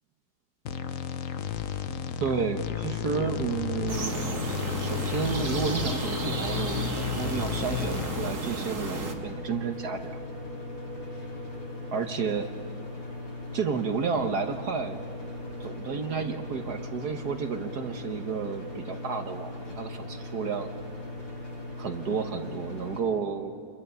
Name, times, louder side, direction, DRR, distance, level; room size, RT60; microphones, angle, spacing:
sound 1, 0.7-8.3, left 9 dB, 55° left, 1.0 m, -33 dB
voice 1, 2.2-4.3 4.8-10.2 11.9-12.5 13.5-15.0 15.6-20.7 21.8-23.5, right 5 dB, 60° right, 6 dB, 1.6 m, -31 dB
sound 2, 3.2-23.0, left 2 dB, 75° left, 6.1 m, -39 dB
sound 3, 3.9-9.1, right 3 dB, 40° right, 2.2 m, -34 dB
29.0 x 22.5 x 6.9 m, 2.2 s
omnidirectional pair, 2.1 m